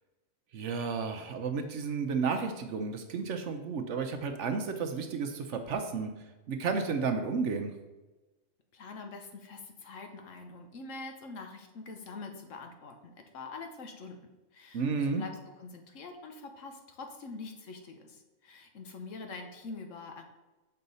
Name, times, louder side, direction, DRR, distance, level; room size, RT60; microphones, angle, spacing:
voice 1, 0.5-6.1 6.5-7.7 14.7-15.2, right 5 dB, 65° right, 6 dB, 0.9 m, -32 dB
voice 2, 8.7-14.2 14.5-14.8 15.2-15.3 15.6-20.2, left 3 dB, 65° left, 5 dB, 1.2 m, -44 dB
6.8 x 5.5 x 4.0 m, 1.1 s
omnidirectional pair, 1.5 m